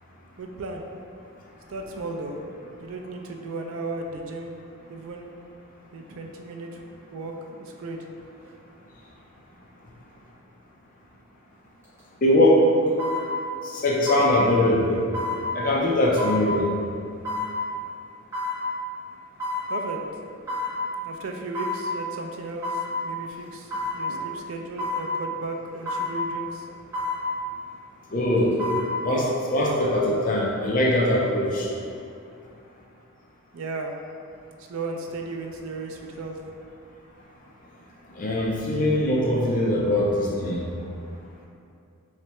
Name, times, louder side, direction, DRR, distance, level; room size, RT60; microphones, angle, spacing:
voice 1, 0.4-0.8 1.7-2.4 2.8-4.5 4.9-5.3 5.9-6.8 7.1-8.0 8.4-8.5 19.7-20.0 21.0-26.7 33.5-33.9 34.7-36.4, right 2 dB, 70° right, 2 dB, 0.4 m, -35 dB
sound 1, 11.8-12.0 13.0-13.2 14.1-14.3 15.1-15.4 16.2-16.4 17.2-17.5 18.3-18.6 19.4-19.7 20.5-20.7 21.5-21.8 22.6-22.9 23.7-24.0 24.8-25.0 25.8-26.1 26.9-27.2 28.4-28.8 29.3-29.4, left 3 dB, 15° right, 1.2 m, -29 dB
voice 2, 12.2-12.6 13.6-15.0 15.5-16.6 24.1-24.2 28.1-28.6 29.0-31.7 38.2-40.7, left 1 dB, 35° left, -3 dB, 0.5 m, -22 dB
3.3 x 3.2 x 3.0 m, 2.5 s
head